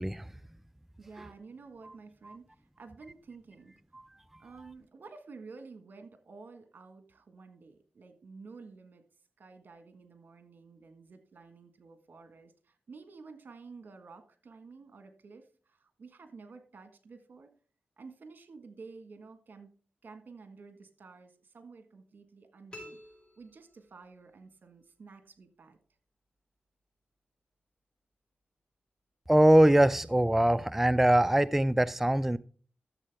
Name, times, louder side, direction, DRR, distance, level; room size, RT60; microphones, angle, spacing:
voice 1, 0.0-0.3 3.9-4.0 29.3-32.4, right 1 dB, 5° right, 0.3 m, -22 dB
voice 2, 1.0-3.7 4.4-9.1 9.4-17.5 18.0-19.7 20.0-23.0 23.4-25.8, right 4 dB, 65° right, 1.5 m, -51 dB
sound 1, 22.7-24.3, left 1 dB, 25° left, 4.9 m, -50 dB
13.0 x 7.4 x 3.5 m
cardioid pair, 65°, 3 cm